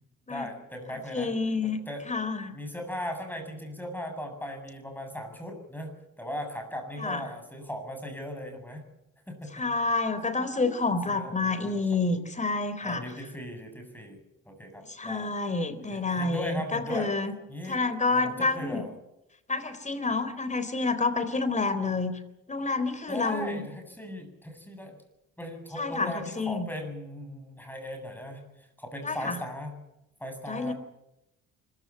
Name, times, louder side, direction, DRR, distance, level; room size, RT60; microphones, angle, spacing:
voice 1, 0.3-1.3 1.6-2.1 2.5-8.8 9.3-9.7 10.3-10.7 11.1-11.9 12.8-14.2 14.5-15.4 15.9-17.1 17.5-17.8 18.1-18.9 23.1-25.0 25.4-29.8 30.2-30.7, equal, 5° left, 5 dB, 7.8 m, -38 dB
voice 2, 1.1-1.8 2.1-2.5 7.0-7.2 9.5-13.0 14.9-17.3 17.7-18.8 19.5-22.1 22.5-23.6 25.8-26.7 29.0-29.4 30.5-30.7, left 3 dB, 25° left, 12 dB, 3.8 m, -28 dB
25.0 x 15.0 x 9.8 m, 0.86 s
cardioid pair, 90°, 30 cm